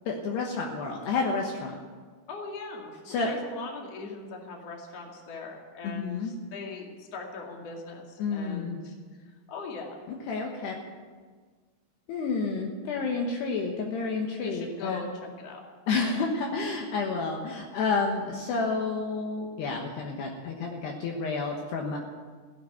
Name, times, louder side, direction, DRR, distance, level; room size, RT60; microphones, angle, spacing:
voice 1, 0.1-1.8 3.1-3.3 5.8-6.3 8.2-8.8 10.1-10.8 12.1-15.1 15.9-22.0, left 4 dB, 70° left, 1 dB, 3.0 m, -30 dB
voice 2, 2.3-9.0 9.5-10.0 14.4-15.1 15.4-15.6, left 3 dB, 40° left, 0 dB, 2.7 m, -40 dB
16.0 x 9.0 x 9.4 m, 1.5 s
omnidirectional pair, 5.5 m